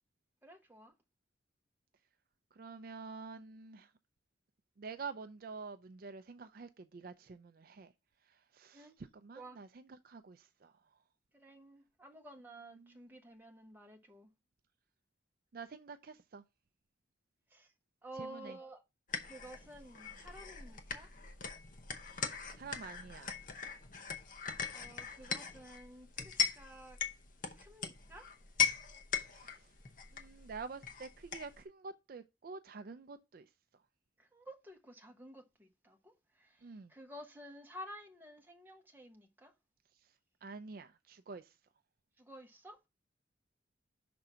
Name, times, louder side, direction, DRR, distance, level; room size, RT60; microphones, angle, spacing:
voice 1, 0.4-0.9 8.7-8.9 9.3-9.6 11.3-14.3 17.5-17.7 18.0-18.8 19.2-21.1 24.7-27.0 27.6-28.3 34.2-39.5 42.2-42.9, right 1 dB, 10° right, 1.1 m, -52 dB
voice 2, 2.6-3.9 4.8-7.9 8.3-10.7 12.7-13.0 15.5-16.4 18.2-18.6 22.1-22.2 22.5-23.4 29.3-29.7 30.1-33.5 36.6-36.9 40.4-41.5, right 4 dB, 50° right, 0.4 m, -48 dB
sound 1, 19.1-31.6, left 6 dB, 45° left, 0.8 m, -39 dB
6.0 x 3.8 x 5.5 m
head